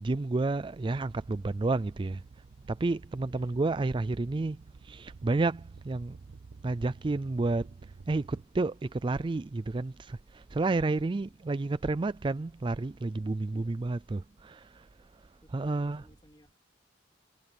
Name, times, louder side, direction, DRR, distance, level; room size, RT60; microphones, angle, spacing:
voice 1, 0.0-2.2 2.7-6.2 6.6-7.7 8.1-14.9 15.1-15.2 15.5-16.0, right 3 dB, 25° right, 0.4 m, -31 dB
sound 1, 0.9-8.4, right 4 dB, 90° right, 0.5 m, -51 dB
voice 2, 3.3-3.6 10.9-11.4 13.5-13.7 14.4-14.6 15.4-16.5, equal, 25° left, 3.0 m, -59 dB
head